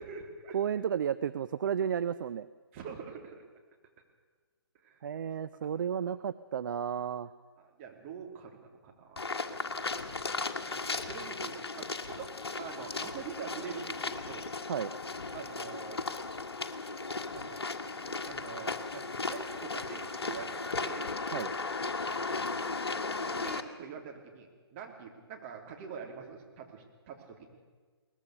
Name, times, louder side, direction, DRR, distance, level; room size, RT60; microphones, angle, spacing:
voice 1, 0.0-0.6 2.7-3.4 4.8-5.0 7.6-9.3 10.7-14.6 15.3-16.0 17.3-17.6 17.9-21.1 23.3-27.5, right 6 dB, 30° right, 2 dB, 3.4 m, -45 dB
voice 2, 0.5-2.5 5.0-7.3 14.7-14.9 21.3-21.5, right 8 dB, 50° right, 14 dB, 0.6 m, -32 dB
sound 1, 9.2-23.6, left 3 dB, 70° left, 1.6 m, -36 dB
22.0 x 20.0 x 6.6 m, 1.5 s
figure-of-eight pair, 135°, 13 cm